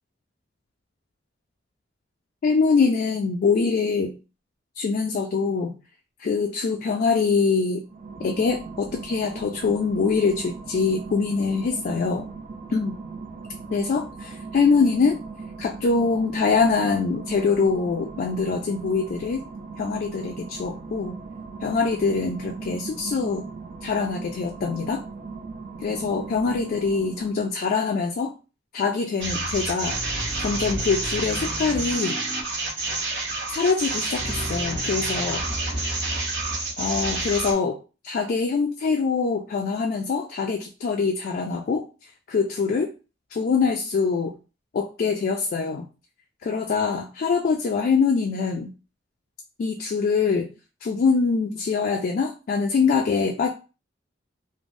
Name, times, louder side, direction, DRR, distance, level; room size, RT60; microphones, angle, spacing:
voice 1, 2.4-4.2 4.8-5.8 6.2-7.8 8.2-12.3 12.7-13.0 13.7-15.2 15.6-19.4 19.8-21.1 21.6-23.4 23.8-25.0 25.8-28.3 28.7-30.0 30.4-32.2 33.5-35.4 36.8-37.8 38.0-41.8 42.3-42.9 43.3-44.4 44.7-45.9 46.4-48.7 49.6-50.5 50.8-53.5, left 4 dB, 50° left, 2 dB, 0.3 m, -24 dB
sound 1, 7.8-27.6, right 4 dB, 45° right, 0.3 m, -38 dB
sound 2, 29.2-37.5, right 2 dB, 65° right, 1.1 m, -28 dB
3.2 x 2.0 x 2.5 m, 0.33 s
head